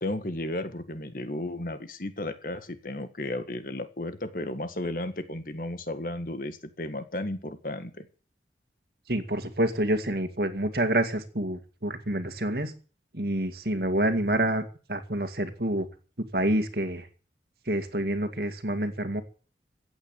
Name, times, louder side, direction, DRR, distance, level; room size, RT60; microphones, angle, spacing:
voice 1, 0.0-8.1, left 1 dB, 50° left, 10 dB, 1.7 m, -34 dB
voice 2, 9.1-12.7 13.1-15.9 16.3-17.1 17.7-19.2, right 1 dB, 60° right, 9 dB, 2.1 m, -27 dB
16.0 x 8.7 x 9.0 m, 0.39 s
head